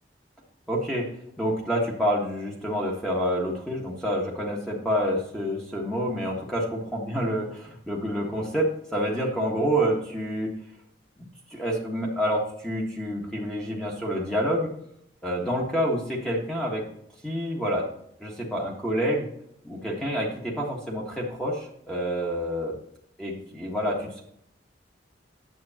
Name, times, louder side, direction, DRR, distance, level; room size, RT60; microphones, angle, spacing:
voice 1, 0.7-1.1 1.4-10.5 11.5-14.7 15.2-16.8 17.2-17.8 18.2-19.3 19.6-22.7 23.2-24.2, equal, 5° left, -3 dB, 1.5 m, -28 dB
9.5 x 7.5 x 2.9 m, 0.71 s
head